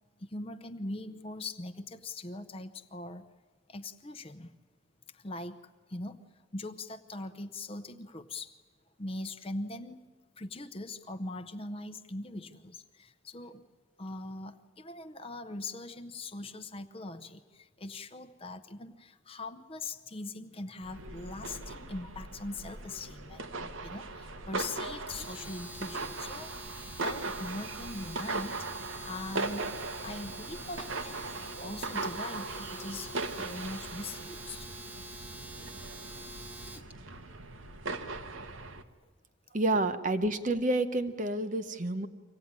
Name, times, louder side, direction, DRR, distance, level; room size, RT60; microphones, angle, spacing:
voice 1, 0.2-3.3 3.7-4.5 5.1-8.6 9.0-10.0 10.4-13.7 14.0-29.7 30.0-31.3 31.6-34.7, left 2 dB, 25° left, 10 dB, 0.8 m, -41 dB
sound 1, 20.8-38.8, right 3 dB, 75° right, 1.2 m, -39 dB
Domestic sounds home sounds, 25.1-36.9, right 1 dB, 10° right, 1.1 m, -46 dB
voice 2, 39.5-42.1, right 2 dB, 40° right, 10 dB, 0.9 m, -29 dB
24.5 x 16.5 x 9.7 m, 1.4 s
head